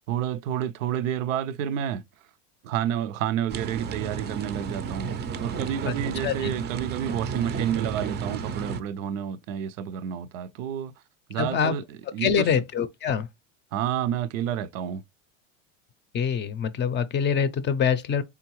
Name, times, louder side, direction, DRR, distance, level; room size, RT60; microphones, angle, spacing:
voice 1, 0.1-2.0 2.6-5.1 5.4-10.9 11.3-11.8 12.1-12.5 13.7-15.0, right 10 dB, 85° right, 0.5 m, -29 dB
sound 1, 3.5-8.8, right 6 dB, 25° right, 0.5 m, -32 dB
voice 2, 11.4-11.7 12.2-13.3 16.1-18.2, left 7 dB, 30° left, 0.5 m, -25 dB
3.8 x 3.5 x 3.0 m
supercardioid pair, 105°, 38 cm